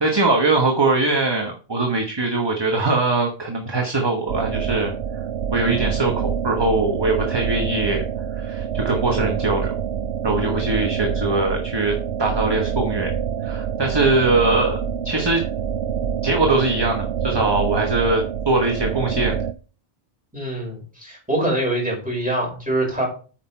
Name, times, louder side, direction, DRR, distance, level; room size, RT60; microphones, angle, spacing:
voice 1, 0.0-5.2 5.5-6.1 6.4-8.0 8.3-9.7 10.2-13.1 13.4-14.8 15.0-15.4 16.2-19.4, right 2 dB, 25° right, 2 dB, 1.1 m, -21 dB
sound 1, 4.3-19.5, right 8 dB, 85° right, 0.9 m, -26 dB
voice 2, 20.3-23.1, right 1 dB, 5° right, -3 dB, 5.4 m, -24 dB
8.7 x 5.9 x 4.4 m, 0.38 s
omnidirectional pair, 1.1 m